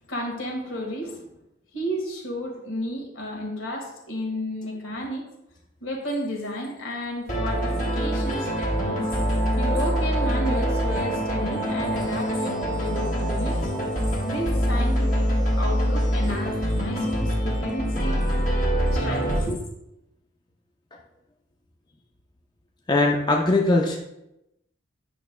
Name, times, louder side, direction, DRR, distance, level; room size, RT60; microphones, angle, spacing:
voice 1, 0.1-1.3 1.7-5.3 5.8-13.7 14.3-18.2 18.9-19.6, equal, 80° left, 0 dB, 1.7 m, -32 dB
sound 1, 7.3-19.4, equal, 40° left, 1.7 m, -24 dB
voice 2, 22.9-24.0, left 2 dB, 20° left, 0 dB, 0.5 m, -20 dB
9.1 x 6.2 x 2.2 m, 0.86 s
head